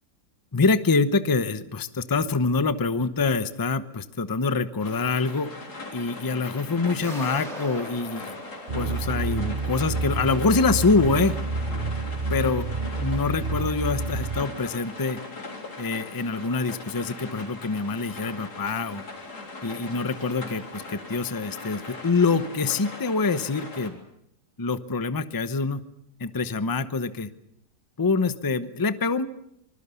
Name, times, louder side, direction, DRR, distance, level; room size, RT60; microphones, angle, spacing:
voice 1, 0.5-5.5 5.9-8.4 8.7-11.4 12.3-12.7 13.0-15.2 15.8-19.0 19.6-24.0 24.6-25.8 26.2-27.3 28.0-29.3, left 4 dB, 20° left, 12 dB, 0.6 m, -25 dB
sound 1, 4.8-23.9, left 3 dB, 70° left, 4.1 m, -40 dB
sound 2, 7.0-9.9, right 1 dB, 20° right, 3.7 m, -40 dB
sound 3, 8.7-14.4, right 3 dB, 35° right, 1.0 m, -29 dB
25.0 x 21.0 x 6.9 m, 0.76 s
omnidirectional pair, 1.8 m